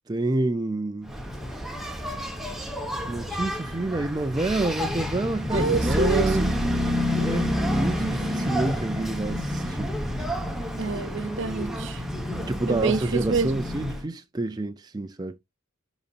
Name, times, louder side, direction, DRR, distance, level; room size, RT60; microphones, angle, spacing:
voice 1, 0.1-1.1 3.1-6.5 7.1-9.9 12.5-15.4, right 2 dB, 20° right, 0.4 m, -28 dB
Engine, 1.1-14.1, equal, ahead, 1.1 m, -29 dB
voice 2, 5.5-6.5 10.8-12.0 12.7-13.5, right 3 dB, 60° right, 0.9 m, -27 dB
10.5 x 4.0 x 2.4 m
head